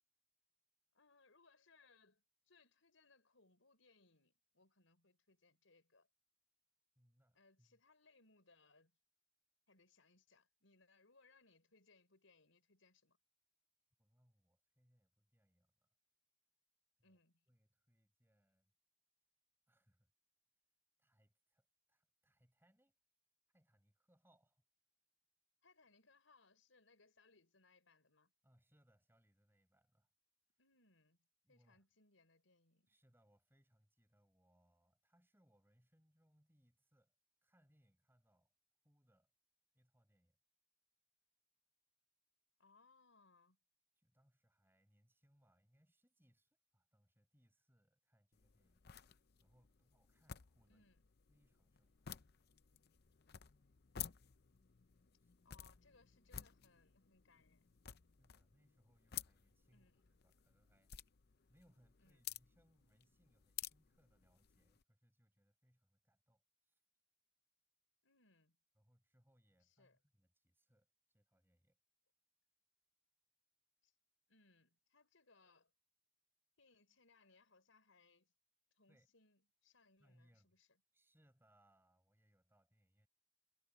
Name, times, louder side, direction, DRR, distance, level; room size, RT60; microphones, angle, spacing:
voice 1, 0.9-6.1 7.3-8.9 9.7-13.2 17.0-17.4 25.6-28.3 30.6-31.2 31.5-33.0 42.6-43.6 50.7-51.0 55.4-57.8 59.7-60.1 62.0-62.3 68.0-68.6 69.6-70.0 73.8-73.9 74.3-75.7 76.6-78.3 78.7-80.8, left 3 dB, 85° left, 4.7 m, -71 dB
voice 2, 6.9-7.8 14.0-15.9 17.0-17.2 17.5-18.7 19.7-20.1 21.0-22.9 23.5-24.6 28.4-30.1 31.4-31.8 32.9-37.1 37.4-38.5 38.8-39.3 39.7-40.4 44.0-50.8 51.3-52.1 55.2-55.3 58.2-61.1 61.5-66.8 68.7-71.8 78.9-79.1 80.0-80.5 80.9-83.1, equal, 10° right, 6.4 m, -76 dB
sound 1, 48.3-64.8, left 10 dB, 55° left, 0.6 m, -54 dB
head